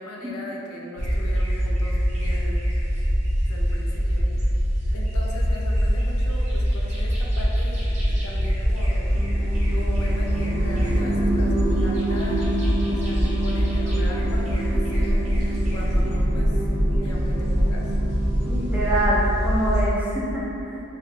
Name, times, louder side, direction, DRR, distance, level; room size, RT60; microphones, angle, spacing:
voice 1, 0.0-2.6 3.4-4.5 4.9-9.1 9.7-12.4 12.9-17.9, left 1 dB, 80° left, -2 dB, 0.5 m, -38 dB
sound 1, 1.0-19.9, equal, 30° right, 0.8 m, -23 dB
sound 2, 9.1-19.2, right 2 dB, 65° right, 0.5 m, -29 dB
voice 2, 18.5-20.8, right 1 dB, 5° right, -7 dB, 0.4 m, -25 dB
3.3 x 2.3 x 3.1 m, 2.9 s
head